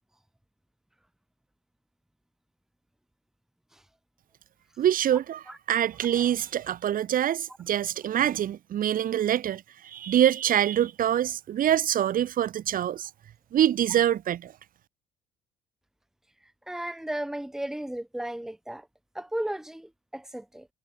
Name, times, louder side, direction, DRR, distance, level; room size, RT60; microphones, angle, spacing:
voice 1, 4.8-13.1 13.5-14.5, right 11 dB, 55° right, 1.8 m, -25 dB
voice 2, 16.7-18.9 19.1-20.7, right 1 dB, 5° right, 1.5 m, -35 dB
cardioid pair, 110°, 17 cm